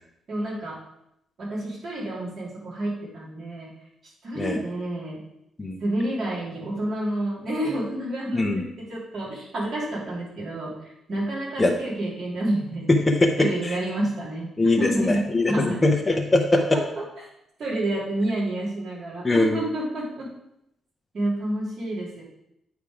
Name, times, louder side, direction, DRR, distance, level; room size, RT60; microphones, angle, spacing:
voice 1, 0.3-0.8 1.4-3.7 4.2-5.2 5.8-12.9 13.4-14.5 14.7-15.8 16.5-17.0 17.6-20.3 21.1-22.2, right 1 dB, 45° right, -6 dB, 2.7 m, -29 dB
voice 2, 12.9-13.8 14.6-16.8 19.2-19.6, left 2 dB, 15° left, 2 dB, 0.7 m, -21 dB
8.4 x 3.5 x 4.9 m, 0.81 s
cardioid pair, 125°, 0 cm